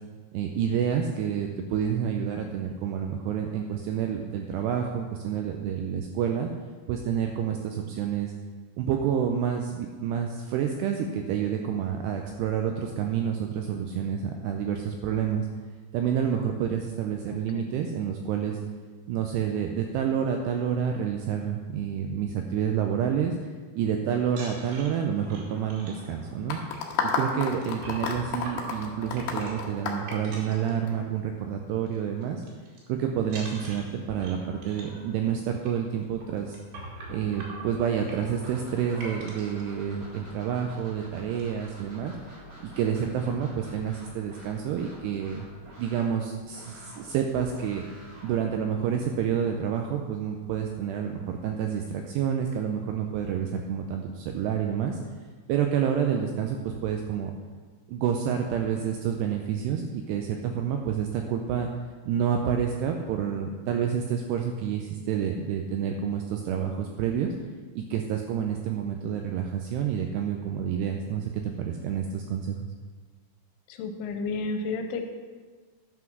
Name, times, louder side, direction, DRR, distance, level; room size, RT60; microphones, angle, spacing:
voice 1, 0.3-6.5 6.9-8.3 8.8-15.5 15.9-18.6 19.1-23.5 23.7-26.6 27.0-32.4 32.9-36.6 37.1-42.1 42.6-45.5 45.8-47.9 48.2-55.0 55.5-57.3 57.9-61.7 62.1-67.3 67.8-72.6, right 8 dB, 85° right, 3 dB, 2.4 m, -29 dB
voice 2, 17.3-17.6 73.7-75.0, left 3 dB, 85° left, 6 dB, 3.2 m, -32 dB
sound 1, 24.3-31.4 31.7-32.0 32.2-32.8 33.2-39.6 40.3-40.4 40.7-40.9 41.1-41.7, right 2 dB, 60° right, 3.6 m, -43 dB
sound 2, 26.5-30.9, left 6 dB, 70° left, 2.4 m, -30 dB
sound 3, 38.4-49.3, left 1 dB, 35° right, 1.4 m, -48 dB
11.0 x 5.9 x 6.0 m, 1.4 s
omnidirectional pair, 5.5 m